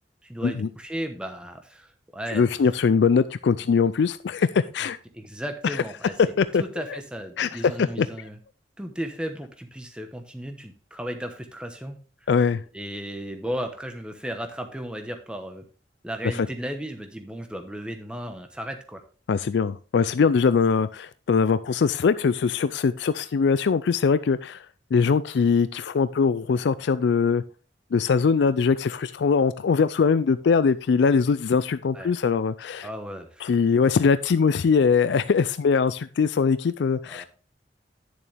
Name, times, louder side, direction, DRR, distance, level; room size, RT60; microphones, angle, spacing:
voice 1, 0.2-2.4 5.1-6.1 6.6-8.4 8.8-12.0 12.7-15.7 16.0-19.0 31.9-32.1 32.8-33.5 37.1-37.3, equal, 5° right, 5 dB, 1.0 m, -35 dB
voice 2, 2.3-5.0 5.6-5.8 6.2-6.6 6.9-7.0 7.4-8.1 12.3-12.6 16.3-16.5 19.3-24.7 24.9-27.4 27.9-32.9 33.4-37.3, left 5 dB, 70° left, 14 dB, 0.4 m, -22 dB
10.5 x 7.0 x 3.4 m, 0.37 s
head